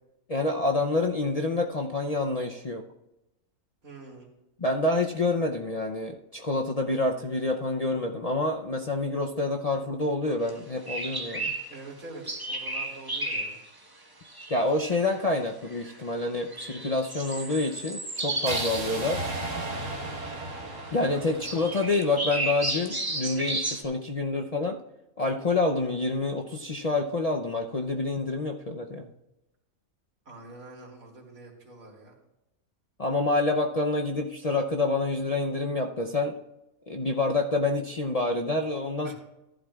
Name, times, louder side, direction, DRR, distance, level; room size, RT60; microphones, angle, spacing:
voice 1, 0.3-2.8 4.6-11.5 14.5-19.2 20.9-24.8 25.2-29.1 33.0-36.3 36.9-39.1, left 2 dB, 40° left, 1 dB, 0.5 m, -27 dB
voice 2, 3.8-4.3 11.7-13.6 14.2-14.3 18.3-18.6 21.1-21.7 30.3-32.1 39.0-39.1, right 2 dB, 80° right, -1 dB, 3.0 m, -46 dB
sound 1, 10.5-10.6 10.9-11.8 12.3-13.6 14.3-14.6 14.9-15.2 15.7-16.0 16.5-19.0 19.3-19.4 20.3-20.4 21.4-23.8, right 2 dB, 15° right, 1.2 m, -33 dB
sound 2, 18.5-22.5, right 2 dB, 65° right, 1.7 m, -35 dB
14.5 x 11.5 x 2.4 m, 0.92 s
omnidirectional pair, 1.4 m